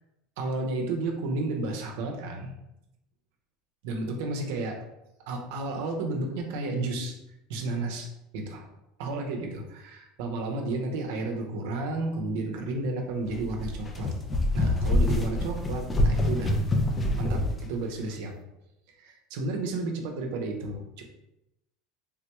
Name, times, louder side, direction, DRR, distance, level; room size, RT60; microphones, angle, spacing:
voice 1, 0.4-2.5 3.8-4.8 5.3-7.2 7.5-8.1 8.3-8.7 9.0-14.1 14.5-16.6 17.2-18.3 19.0-21.0, right 2 dB, 70° right, 3 dB, 0.6 m, -32 dB
sound 1, 13.3-17.6, left 1 dB, 15° left, 0.4 m, -26 dB
3.5 x 2.2 x 3.0 m, 0.87 s
supercardioid pair, 150°, 0 cm